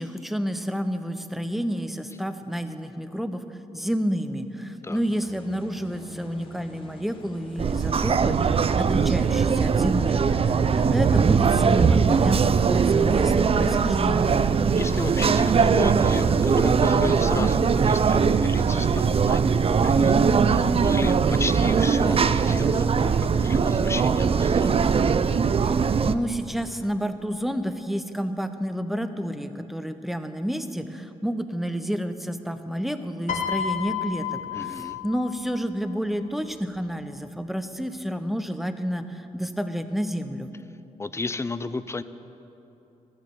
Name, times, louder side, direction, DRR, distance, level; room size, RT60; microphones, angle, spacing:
voice 1, 0.0-3.5 3.7-14.4 25.6-25.8 26.0-40.5, equal, ahead, 9 dB, 1.0 m, -30 dB
sound 1, 4.9-20.5, left 2 dB, 35° left, 1.9 m, -42 dB
sound 2, 7.6-26.1, right 6 dB, 40° right, 0.5 m, -21 dB
voice 2, 14.8-20.2 20.5-24.7 34.5-35.0 41.0-42.0, left 3 dB, 20° left, 13 dB, 0.6 m, -33 dB
Piano, 33.3-35.6 36.7-36.9, left 8 dB, 55° left, 1.3 m, -31 dB
13.5 x 9.5 x 6.8 m, 2.9 s
supercardioid pair, 55°, 15 cm